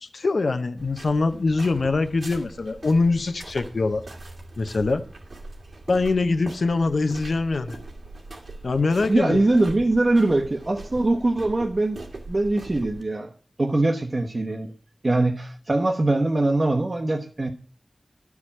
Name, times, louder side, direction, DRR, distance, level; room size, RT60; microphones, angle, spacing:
voice 1, 0.0-4.1 4.6-5.0 5.9-7.8 8.6-9.4, left 3 dB, 85° left, 0.8 m, -23 dB
sound 1, 0.8-13.0, right 2 dB, 80° right, 2.4 m, -41 dB
voice 2, 9.1-12.0 12.3-13.3 13.6-14.7 15.0-17.5, right 2 dB, 50° right, 1.0 m, -22 dB
12.0 x 4.8 x 8.6 m
wide cardioid pair, 75°, 0 cm